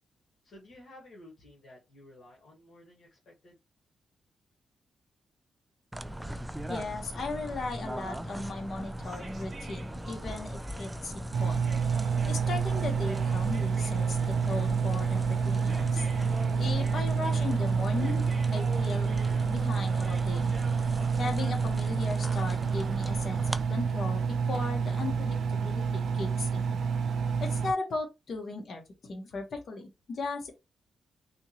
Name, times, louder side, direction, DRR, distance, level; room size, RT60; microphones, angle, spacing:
voice 1, 0.4-3.6, left 1 dB, 75° left, 1.6 m, -53 dB
sound 1, 5.9-23.6, right 1 dB, 10° right, 0.3 m, -40 dB
voice 2, 6.7-11.7 12.3-16.1 16.6-18.3 18.5-19.1 19.5-20.5 21.1-26.8 27.4-28.8 29.1-30.5, left 3 dB, 55° left, 1.2 m, -37 dB
sound 2, 9.0-21.5, right 2 dB, 40° right, 1.1 m, -46 dB
Engine, 11.3-27.7, right 5 dB, 75° right, 0.5 m, -28 dB
3.5 x 2.9 x 2.9 m
wide cardioid pair, 125°, 0 cm